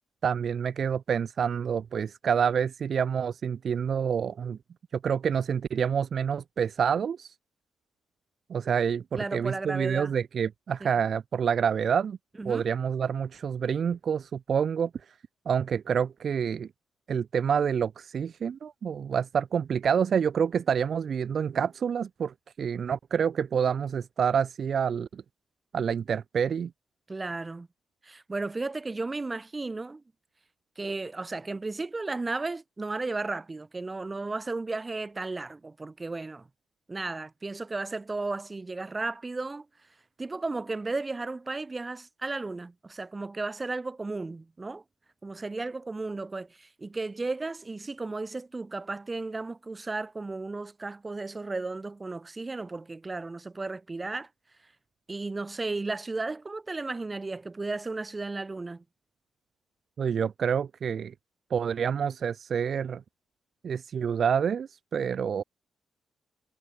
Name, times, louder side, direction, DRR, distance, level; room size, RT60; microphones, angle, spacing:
voice 1, 0.2-4.6 5.0-7.3 8.5-12.2 12.5-14.9 15.5-16.7 17.1-25.2 25.7-26.7 60.0-61.1 61.5-63.0 63.6-65.4, right 7 dB, 60° right, 1.9 m, -27 dB
voice 2, 9.1-10.1 10.8-10.9 12.4-12.7 27.1-27.7 28.0-30.0 30.8-36.5 36.9-39.7 40.2-44.8 45.2-54.3 55.1-58.8, right 3 dB, 25° right, 4.0 m, -34 dB
cardioid pair, 70°, 0 cm